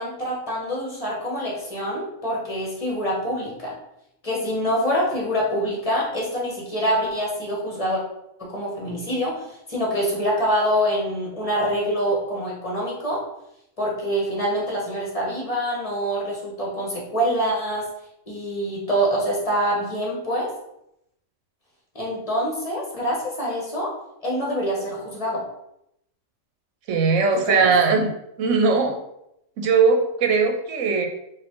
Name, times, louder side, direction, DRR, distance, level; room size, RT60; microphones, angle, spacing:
voice 1, 0.0-3.7 4.2-8.0 8.4-13.2 13.8-17.8 18.3-20.5 21.9-23.9 24.2-25.4 27.3-27.7, equal, 25° left, -4 dB, 1.3 m, -25 dB
voice 2, 26.9-28.1 28.4-29.0 29.6-31.1, right 4 dB, 70° right, 3 dB, 1.0 m, -19 dB
4.2 x 2.6 x 4.5 m, 0.80 s
omnidirectional pair, 1.4 m